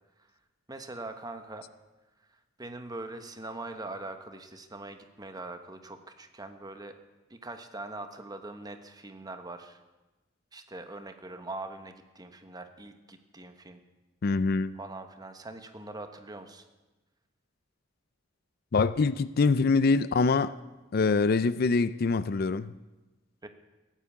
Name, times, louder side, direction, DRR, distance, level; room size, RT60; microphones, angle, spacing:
voice 1, 0.7-1.7 2.2-7.0 7.3-9.8 10.5-13.8 14.8-16.6 23.4-23.5, right 2 dB, 20° right, 1.2 m, -42 dB
voice 2, 14.2-14.7 18.7-20.5 20.9-22.7, left 4 dB, 55° left, 0.4 m, -24 dB
17.0 x 8.9 x 8.4 m
head